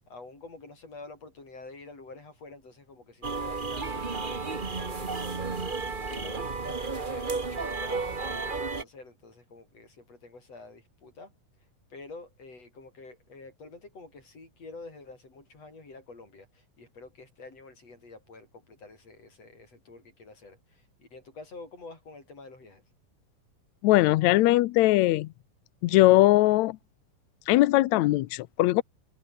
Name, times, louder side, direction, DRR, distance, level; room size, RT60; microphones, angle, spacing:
voice 1, 0.1-5.8 6.1-11.3 11.9-22.8, left 3 dB, 50° left, 8.5 m, -48 dB
sound 1, 3.2-8.8, right 4 dB, 45° right, 0.6 m, -32 dB
voice 2, 23.8-25.3 25.8-26.8 27.5-28.8, left 17 dB, 75° left, 1.7 m, -20 dB
omnidirectional pair, 3.8 m